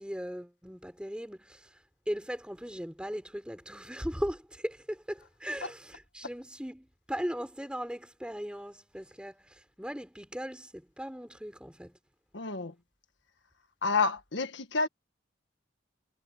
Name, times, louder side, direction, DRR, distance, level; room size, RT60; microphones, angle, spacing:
voice 1, 0.0-12.0, equal, 5° right, 4.6 m, -38 dB
voice 2, 12.3-12.7 13.8-14.9, left 4 dB, 75° left, 1.7 m, -29 dB
head